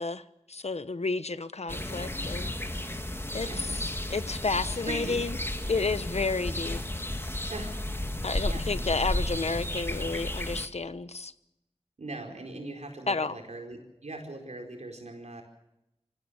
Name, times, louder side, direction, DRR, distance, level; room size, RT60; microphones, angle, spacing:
voice 1, 0.0-2.9 3.3-5.4 5.7-6.8 8.2-11.3 13.1-13.4, left 3 dB, 70° left, 13 dB, 1.1 m, -31 dB
sound 1, 1.7-10.7, left 1 dB, 20° left, 1.8 m, -33 dB
voice 2, 3.4-3.8 4.9-5.1 7.4-7.8 8.5-8.6 12.0-15.4, right 2 dB, 85° right, 3 dB, 4.7 m, -40 dB
25.5 x 16.0 x 7.2 m, 0.85 s
wide cardioid pair, 45°, 11 cm